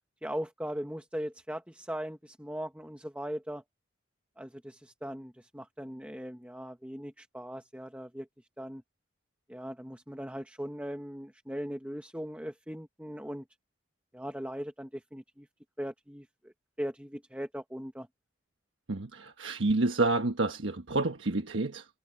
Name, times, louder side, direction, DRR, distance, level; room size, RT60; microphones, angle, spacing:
voice 1, 0.2-3.6 4.4-8.3 8.6-8.8 9.5-13.4 14.1-15.5 15.8-16.5 16.8-18.1, equal, 5° right, 1.3 m, -39 dB
voice 2, 18.9-21.9, right 2 dB, 80° right, 1.2 m, -29 dB
head